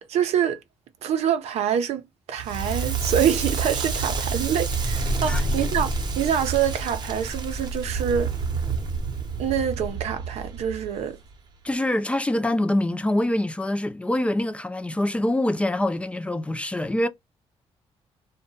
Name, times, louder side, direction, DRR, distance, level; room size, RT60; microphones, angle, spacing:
voice 1, 0.1-0.6 1.0-2.0 2.3-8.3 9.4-11.2, right 8 dB, 80° right, 0.6 m, -25 dB
Crackle, 2.4-11.3, right 4 dB, 40° right, 0.7 m, -28 dB
voice 2, 11.6-17.1, left 1 dB, 10° left, 0.4 m, -25 dB
2.7 x 2.1 x 2.8 m
cardioid pair, 105°, 11 cm